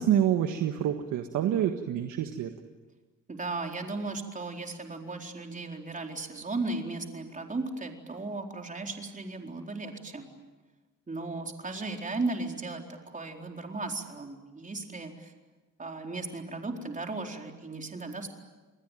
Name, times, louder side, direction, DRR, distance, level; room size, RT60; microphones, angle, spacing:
voice 1, 0.0-2.5, right 10 dB, 80° right, 6 dB, 1.7 m, -27 dB
voice 2, 3.3-10.3 11.1-15.3 15.8-18.3, right 3 dB, 25° right, 3 dB, 4.2 m, -36 dB
29.0 x 21.0 x 9.2 m, 1.2 s
cardioid pair, 90°, 30 cm